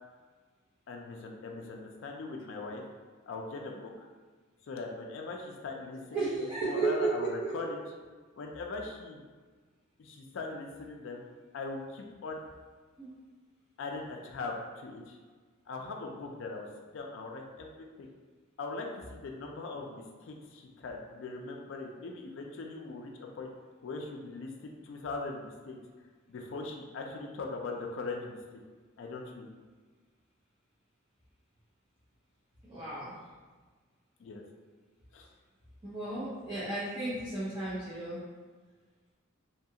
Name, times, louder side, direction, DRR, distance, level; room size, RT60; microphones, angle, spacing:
voice 1, 0.9-2.8 3.3-4.1 4.7-7.8 8.4-9.2 10.0-11.2 11.5-12.4 13.8-15.2 15.7-16.7 16.9-18.1 18.6-23.5 23.8-25.8 26.3-28.4 29.0-29.5 34.2-34.4 35.1-35.3, left 3 dB, 65° left, 1 dB, 0.3 m, -40 dB
voice 2, 6.1-7.7 13.0-13.1 32.7-33.1 35.8-38.2, right 3 dB, 20° right, -12 dB, 0.6 m, -33 dB
2.8 x 2.3 x 2.7 m, 1.4 s
head